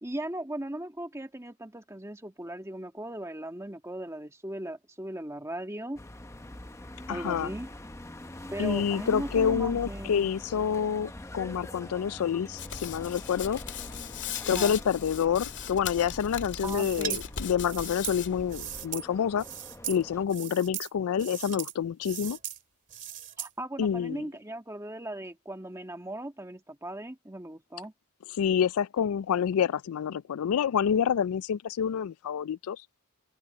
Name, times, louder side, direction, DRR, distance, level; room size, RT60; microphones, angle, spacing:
voice 1, 0.0-6.0 7.1-7.7 8.5-10.3 14.5-14.7 16.6-17.2 23.4-27.9, right 1 dB, 15° right, 1.6 m, -38 dB
sound 1, 6.0-20.2, left 1 dB, 15° left, 0.8 m, -44 dB
voice 2, 7.1-7.5 8.6-13.6 14.5-19.4 19.9-22.4 23.8-24.3 28.4-32.8, left 8 dB, 70° left, 0.3 m, -28 dB
Hands, 12.6-18.8, left 7 dB, 55° left, 2.0 m, -39 dB
sound 2, 16.6-17.2 17.6-19.1 19.4-20.0 20.3-20.9 21.2-21.7 22.0-22.6 22.9-23.5, right 11 dB, 35° right, 2.2 m, -38 dB
open air
head